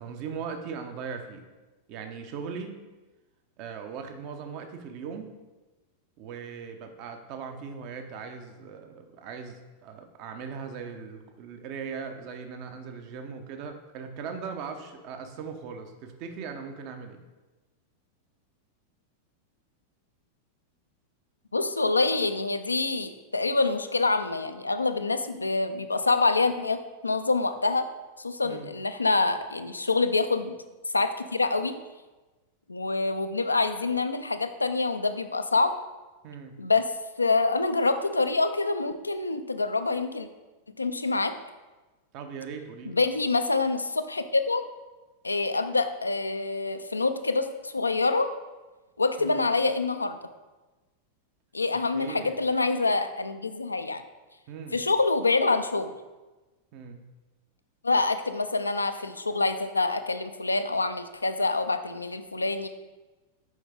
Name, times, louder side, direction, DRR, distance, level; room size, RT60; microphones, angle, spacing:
voice 1, 0.0-1.5 1.9-2.7 3.6-5.3 6.2-17.2 28.4-28.7 36.2-36.6 42.1-43.0 49.2-49.4 51.9-52.4 54.5-54.8 56.7-57.0, right 6 dB, 45° right, 6 dB, 0.7 m, -39 dB
voice 2, 21.5-27.9 28.2-30.6 30.9-31.7 32.7-35.7 36.6-36.9 37.2-40.3 40.7-41.3 42.9-44.6 45.2-48.3 49.0-50.2 51.5-54.0 54.7-55.9 57.8-62.7, left 3 dB, 80° left, 9 dB, 0.4 m, -26 dB
6.3 x 4.8 x 3.5 m, 1.2 s
figure-of-eight pair, 90°, 0 cm